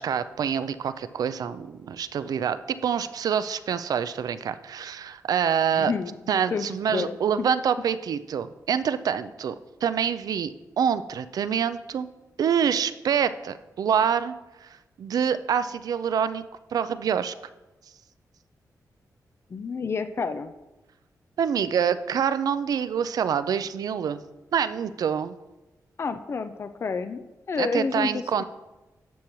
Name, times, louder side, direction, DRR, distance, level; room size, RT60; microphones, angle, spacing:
voice 1, 0.0-5.9 6.3-9.5 9.8-12.1 12.4-16.4 16.7-17.3 21.4-24.2 24.5-25.4 27.6-28.4, right 8 dB, 75° right, 13 dB, 0.4 m, -26 dB
voice 2, 5.7-6.7 6.9-7.5 19.5-20.5 26.0-28.4, left 5 dB, 40° left, 10 dB, 0.4 m, -30 dB
11.5 x 7.1 x 3.1 m, 1.1 s
cardioid pair, 95°, 6 cm